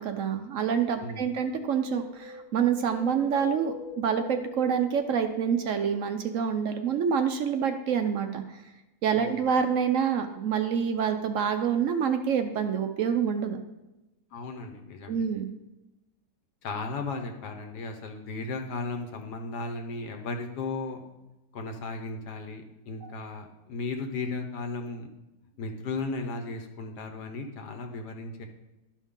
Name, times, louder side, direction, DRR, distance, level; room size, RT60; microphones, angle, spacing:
voice 1, 0.0-8.6 9.0-13.6 15.1-15.5 23.0-23.1, right 7 dB, 65° right, 7 dB, 0.8 m, -27 dB
Wind, 1.5-5.8 6.1-6.2, left 1 dB, 40° right, 1.9 m, -44 dB
voice 2, 14.3-15.2 16.6-21.0 21.5-25.1 25.6-28.5, left 3 dB, 90° left, 5 dB, 1.6 m, -35 dB
11.5 x 5.4 x 3.7 m, 1.0 s
omnidirectional pair, 1.7 m